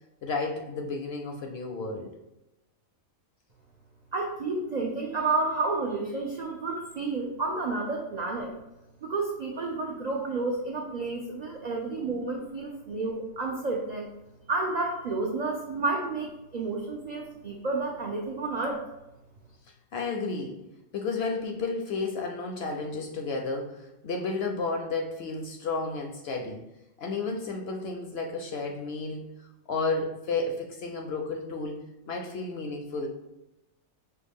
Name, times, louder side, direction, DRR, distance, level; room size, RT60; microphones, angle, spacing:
voice 1, 0.2-2.2 12.0-12.1 19.9-20.7 20.9-26.6 27.0-29.3 29.7-33.1, left 3 dB, 65° left, 2 dB, 0.6 m, -32 dB
voice 2, 4.1-8.5 9.0-14.1 14.5-18.8, right 3 dB, 85° right, 0 dB, 0.3 m, -30 dB
5.0 x 2.3 x 3.5 m, 0.93 s
omnidirectional pair, 1.4 m